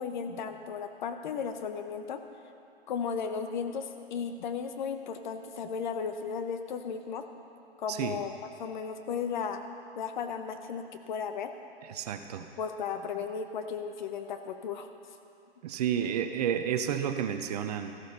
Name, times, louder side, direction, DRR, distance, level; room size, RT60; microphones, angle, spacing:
voice 1, 0.0-2.2 2.9-7.2 7.8-8.3 8.6-9.7 10.0-11.5 12.6-14.9, left 6 dB, 45° left, 7 dB, 1.1 m, -35 dB
voice 2, 7.9-8.2 11.8-12.5 15.6-17.9, right 9 dB, 40° right, 8 dB, 0.8 m, -31 dB
14.0 x 13.0 x 5.4 m, 2.6 s
figure-of-eight pair, 130°, 32 cm